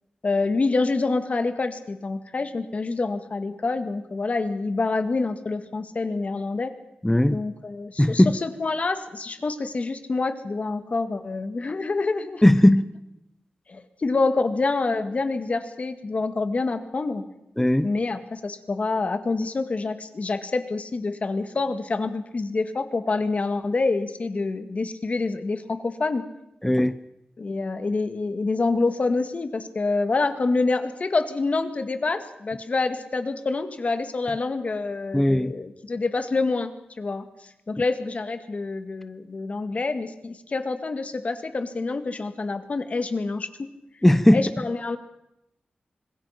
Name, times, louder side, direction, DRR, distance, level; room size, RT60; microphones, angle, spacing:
voice 1, 0.2-6.7 7.3-12.4 13.7-17.2 17.8-26.3 27.4-36.7 37.0-37.3 37.7-43.5 44.3-45.0, left 3 dB, 50° left, 2.0 m, -27 dB
voice 2, 7.0-7.4 8.0-8.4 12.4-12.9 17.6-17.9 26.6-26.9 35.1-35.5 44.0-44.4, left 1 dB, 10° left, 0.8 m, -17 dB
25.5 x 21.0 x 5.9 m
wide cardioid pair, 90°, 3 cm